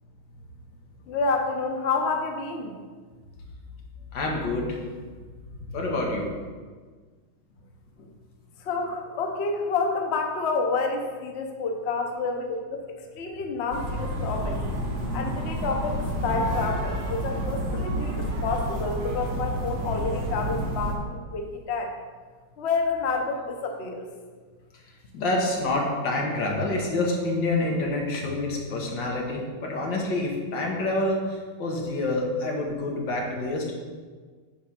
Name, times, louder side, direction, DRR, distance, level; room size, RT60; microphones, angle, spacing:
voice 1, 1.1-2.7 8.0-8.1 8.6-14.6 15.1-21.9 22.6-24.1, left 4 dB, 80° left, 3 dB, 0.6 m, -29 dB
voice 2, 4.1-4.8 5.7-6.2 25.1-33.7, left 2 dB, 60° left, -1 dB, 1.8 m, -27 dB
sound 1, 13.7-20.9, right 1 dB, 55° right, 1.6 m, -29 dB
8.3 x 3.4 x 5.8 m, 1.5 s
omnidirectional pair, 2.3 m